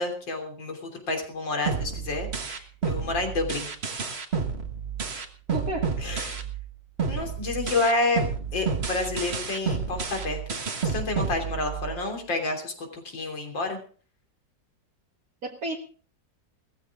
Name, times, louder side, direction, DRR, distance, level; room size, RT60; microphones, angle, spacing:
voice 1, 0.0-3.7 6.0-6.4 7.1-8.2 8.5-13.8, left 2 dB, 90° left, 4 dB, 4.0 m, -29 dB
sound 1, 1.7-6.7 7.0-12.0, right 5 dB, 35° right, 1.6 m, -30 dB
voice 2, 5.5-6.0 15.4-15.8, right 2 dB, 55° right, 0 dB, 2.1 m, -31 dB
18.5 x 14.5 x 3.7 m, 0.41 s
omnidirectional pair, 2.0 m